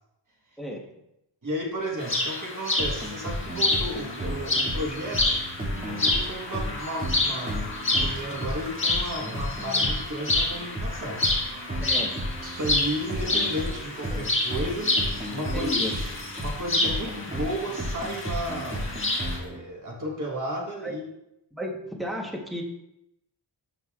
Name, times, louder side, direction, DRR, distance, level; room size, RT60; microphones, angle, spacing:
voice 1, 1.4-5.5 5.8-7.6 7.9-11.2 12.4-15.7 16.4-21.0, equal, 40° right, -1 dB, 1.4 m, -33 dB
sound 1, 2.0-19.4, left 2 dB, 25° left, 1.5 m, -29 dB
sound 2, 2.8-19.6, equal, 15° right, 2.2 m, -34 dB
voice 2, 11.8-12.3 14.1-14.2 15.5-15.9 20.8-21.0 21.5-22.6, equal, ahead, -1 dB, 1.1 m, -33 dB
13.0 x 5.3 x 2.4 m, 0.83 s
wide cardioid pair, 170°, 48 cm